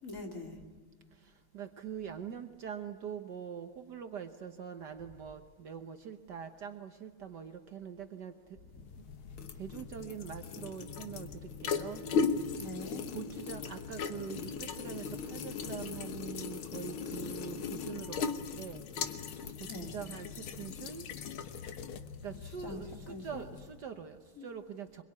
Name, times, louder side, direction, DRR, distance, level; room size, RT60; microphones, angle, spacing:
voice 1, 0.0-0.6 12.5-13.0 19.6-20.0 22.6-22.8 23.1-23.4 24.4-24.5, left 2 dB, 35° left, 2 dB, 2.9 m, -43 dB
voice 2, 1.2-8.4 9.6-12.0 13.1-18.8 19.7-21.1 22.2-25.0, right 7 dB, 55° right, 7 dB, 1.5 m, -44 dB
sound 1, 8.7-23.8, left 5 dB, 75° left, 2.0 m, -38 dB
25.0 x 22.5 x 9.6 m, 1.4 s
omnidirectional pair, 2.3 m